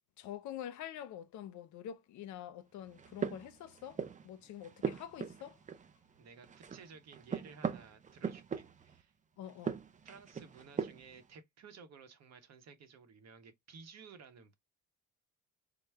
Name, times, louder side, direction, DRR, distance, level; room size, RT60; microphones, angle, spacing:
voice 1, 0.2-5.6 9.4-9.8, left 10 dB, 75° left, 0.5 m, -46 dB
sound 1, 2.9-4.3 4.6-6.2 6.4-9.0 9.5-11.2, right 6 dB, 25° right, 0.4 m, -40 dB
voice 2, 6.2-9.1 10.0-14.5, right 5 dB, 60° right, 0.8 m, -55 dB
3.4 x 2.0 x 3.2 m
cardioid pair, 90°, 30 cm